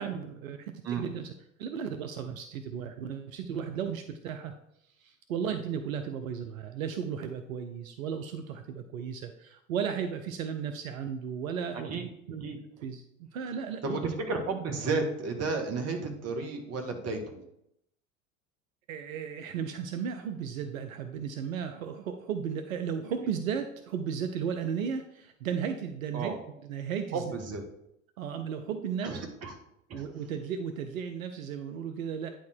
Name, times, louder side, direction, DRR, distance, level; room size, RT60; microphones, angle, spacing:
voice 1, 0.0-1.3 1.6-4.5 5.0-11.9 12.3-12.4 12.8-14.0 18.9-26.3 26.6-27.2 28.2-29.2 29.9-32.3, right 7 dB, 80° right, 7 dB, 0.7 m, -35 dB
voice 2, 13.8-17.4 26.1-26.4 27.1-27.6 29.0-29.5 29.9-30.0, right 4 dB, 40° right, 4 dB, 1.9 m, -32 dB
9.4 x 4.5 x 4.5 m, 0.77 s
hypercardioid pair, 80°, 40 cm